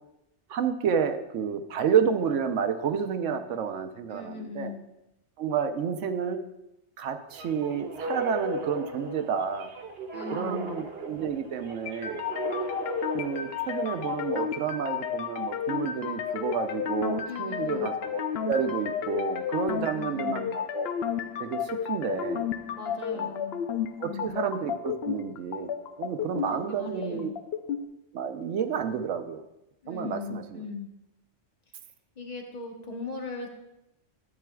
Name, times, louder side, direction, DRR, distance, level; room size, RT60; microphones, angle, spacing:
voice 1, 0.5-4.7 5.4-6.4 7.0-9.7 10.3-12.2 13.1-20.9 21.4-22.5 23.1-23.3 24.0-25.7 26.0-27.3 28.1-29.4 29.9-30.6, right 7 dB, 85° right, 8 dB, 1.0 m, -30 dB
voice 2, 4.1-4.9 10.1-10.7 17.3-17.9 19.9-20.6 22.7-23.6 24.0-24.4 26.5-27.3 29.8-30.9 32.2-33.5, left 4 dB, 35° left, 2 dB, 1.2 m, -39 dB
sound 1, 7.3-14.1, right 2 dB, 55° right, 1.2 m, -37 dB
sound 2, 11.9-27.8, left 8 dB, 65° left, 0.7 m, -32 dB
12.0 x 8.4 x 2.3 m, 0.88 s
omnidirectional pair, 1.3 m